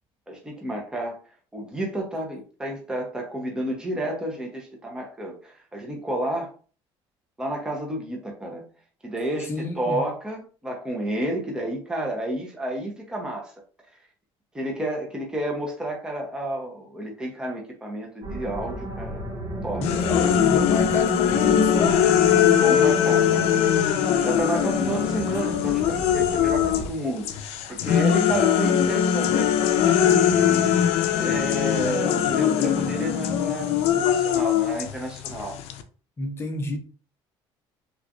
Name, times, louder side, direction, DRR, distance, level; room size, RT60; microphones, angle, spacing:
voice 1, 0.3-1.2 1.5-6.5 7.4-8.7 9.0-13.5 14.5-19.2 19.6-20.3 22.4-23.5 24.2-27.3 27.7-30.7 31.1-35.6, right 1 dB, 5° right, 0.8 m, -30 dB
voice 2, 9.5-10.1 19.8-22.2 36.2-36.8, left 2 dB, 25° left, 0.8 m, -30 dB
sound 1, 18.2-26.9, right 2 dB, 50° right, 1.1 m, -34 dB
sound 2, 19.8-26.9 27.2-35.8, left 9 dB, 80° left, 0.5 m, -21 dB
3.5 x 3.1 x 2.6 m
cardioid pair, 140°, 10 cm